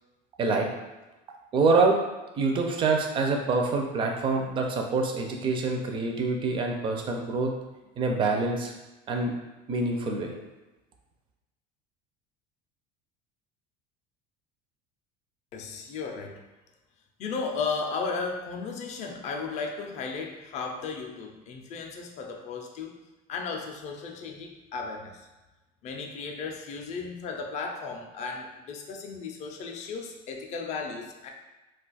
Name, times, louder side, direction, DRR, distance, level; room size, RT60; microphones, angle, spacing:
voice 1, 1.5-2.0 2.4-7.5 8.0-8.7 9.1-9.3 9.7-10.3, right 3 dB, 25° right, 2 dB, 0.4 m, -25 dB
voice 2, 15.5-16.4 17.2-22.9 23.3-25.3 25.8-31.3, left 4 dB, 35° left, 2 dB, 0.4 m, -35 dB
2.4 x 2.3 x 4.0 m, 1.1 s
cardioid pair, 155°, 20 cm